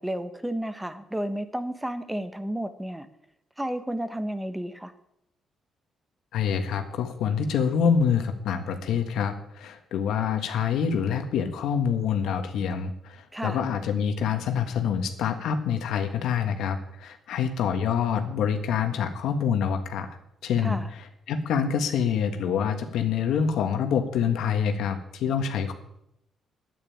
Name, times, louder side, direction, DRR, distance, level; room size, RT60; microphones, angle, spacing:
voice 1, 0.0-3.1 3.6-4.9 13.3-13.6 20.6-20.9, right 1 dB, 10° right, 10 dB, 1.3 m, -32 dB
voice 2, 6.3-20.1 20.4-20.8 21.3-25.7, left 7 dB, 80° left, 7 dB, 1.6 m, -26 dB
9.6 x 9.2 x 8.9 m, 0.79 s
cardioid pair, 90°, 0 cm